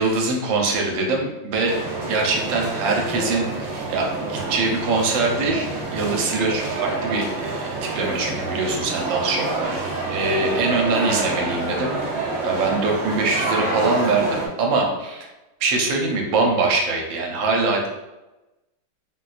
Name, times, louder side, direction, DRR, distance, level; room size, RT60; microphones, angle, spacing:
voice 1, 0.0-1.8 2.0-11.9 12.4-15.3 15.6-17.9, right 3 dB, 85° right, 1 dB, 1.4 m, -23 dB
sound 1, 1.6-14.5, right 3 dB, 70° right, 1.3 m, -27 dB
3.9 x 2.2 x 2.4 m, 1.0 s
omnidirectional pair, 2.0 m